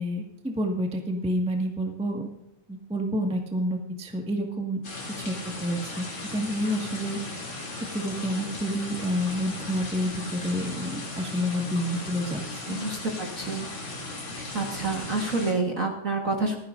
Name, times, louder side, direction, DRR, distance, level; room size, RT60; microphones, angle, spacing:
voice 1, 0.0-2.2 2.7-4.8 5.2-5.3 5.6-7.5 7.9-12.8, equal, 5° right, 2 dB, 0.7 m, -29 dB
sound 1, 4.8-15.5, left 2 dB, 40° left, 3.7 m, -37 dB
voice 2, 12.7-13.7 14.4-16.6, right 3 dB, 40° right, 1 dB, 1.3 m, -28 dB
27.0 x 10.0 x 2.6 m, 0.86 s
omnidirectional pair, 3.4 m